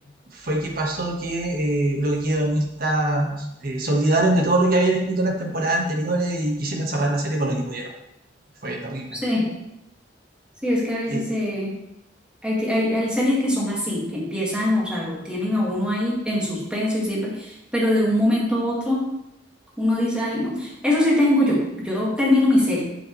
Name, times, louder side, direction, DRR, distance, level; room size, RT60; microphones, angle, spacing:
voice 1, 0.3-7.9 8.6-9.1 11.1-11.2, right 1 dB, 50° right, 0 dB, 1.5 m, -23 dB
voice 2, 9.1-9.5 10.6-11.8 12.4-19.1 19.8-22.8, left 1 dB, 5° right, -5 dB, 2.0 m, -22 dB
8.2 x 7.2 x 3.2 m, 0.85 s
head